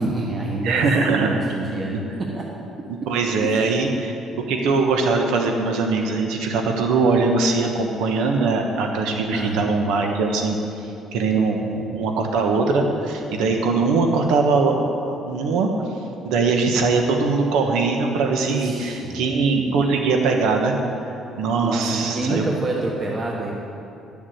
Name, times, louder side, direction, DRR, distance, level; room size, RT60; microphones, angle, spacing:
voice 1, 0.0-2.4 3.5-3.7 9.3-9.6 18.5-19.3 21.6-23.5, right 2 dB, 30° right, -2 dB, 1.3 m, -27 dB
voice 2, 0.6-2.0 3.1-4.1 4.5-10.6 11.1-14.8 15.3-15.7 16.2-20.7 21.4-22.4, right 4 dB, 90° right, 3 dB, 1.3 m, -21 dB
12.0 x 7.3 x 8.1 m, 2.8 s
cardioid pair, 135°, 0 cm